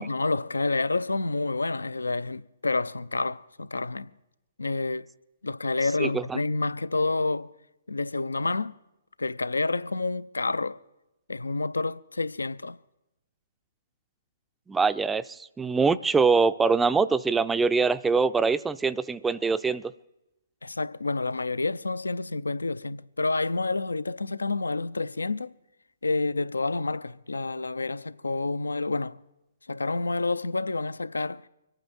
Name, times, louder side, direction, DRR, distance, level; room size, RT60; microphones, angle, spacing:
voice 1, 0.0-4.1 4.6-5.1 5.4-7.5 7.9-8.8 9.2-10.8 11.3-12.8 20.6-25.5 26.0-29.2 29.7-31.4, left 3 dB, 85° left, 0.5 m, -29 dB
voice 2, 6.0-6.4 14.7-19.9, right 4 dB, 10° right, 0.4 m, -24 dB
26.0 x 9.0 x 4.3 m
figure-of-eight pair, 130°, 0 cm